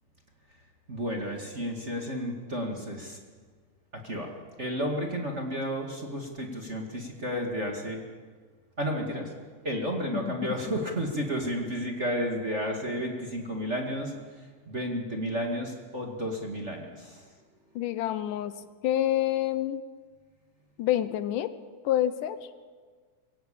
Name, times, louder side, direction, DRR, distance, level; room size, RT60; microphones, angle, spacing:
voice 1, 0.9-3.2 3.9-4.3 4.6-8.0 8.8-9.3 9.6-14.1 14.7-17.2, equal, 25° right, 0 dB, 1.9 m, -32 dB
voice 2, 10.1-10.5 17.8-18.5 18.8-19.8 20.8-21.5 21.8-22.4, left 12 dB, 80° left, 13 dB, 2.4 m, -27 dB
23.5 x 16.5 x 8.7 m, 1.5 s
omnidirectional pair, 3.7 m